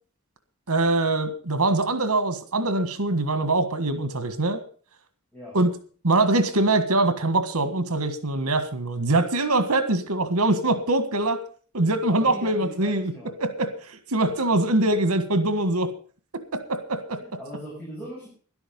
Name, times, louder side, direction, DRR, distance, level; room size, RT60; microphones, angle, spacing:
voice 1, 0.7-4.6 5.5-5.7 6.0-11.4 11.7-13.1 13.4-15.9 16.5-17.2, right 2 dB, 85° right, 11 dB, 1.7 m, -23 dB
voice 2, 12.1-13.3 17.2-18.3, equal, 5° left, -7 dB, 6.5 m, -39 dB
12.5 x 11.5 x 5.4 m, 0.42 s
head